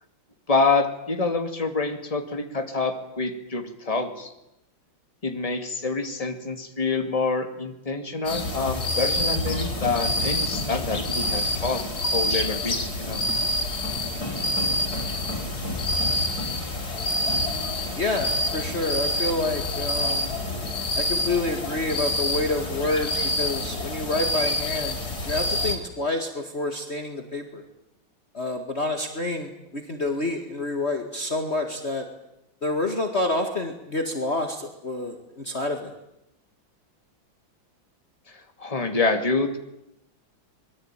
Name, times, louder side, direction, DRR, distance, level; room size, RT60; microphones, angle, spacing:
voice 1, 0.5-4.3 5.2-13.2 38.3-39.6, left 3 dB, 15° left, 6 dB, 2.4 m, -27 dB
sound 1, 8.2-25.8, left 1 dB, 50° left, 4.9 m, -27 dB
voice 2, 18.0-20.3 20.9-25.0 25.2-27.6 28.3-32.1 32.6-35.9, left 2 dB, 35° left, 4 dB, 2.2 m, -28 dB
25.5 x 22.0 x 9.1 m, 0.85 s
omnidirectional pair, 2.2 m